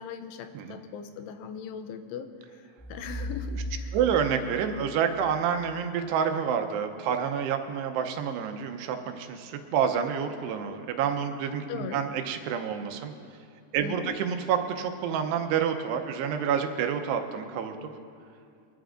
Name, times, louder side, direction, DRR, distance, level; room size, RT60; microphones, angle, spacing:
voice 1, 0.0-4.0 11.7-12.0 13.8-14.2, left 7 dB, 85° left, 8 dB, 2.8 m, -39 dB
sound 1, 2.8-5.6, left 1 dB, 10° right, 3.5 m, -37 dB
voice 2, 3.9-13.1 13.7-17.9, right 7 dB, 90° right, 6 dB, 2.9 m, -28 dB
23.5 x 12.5 x 2.5 m, 2.4 s
omnidirectional pair, 4.7 m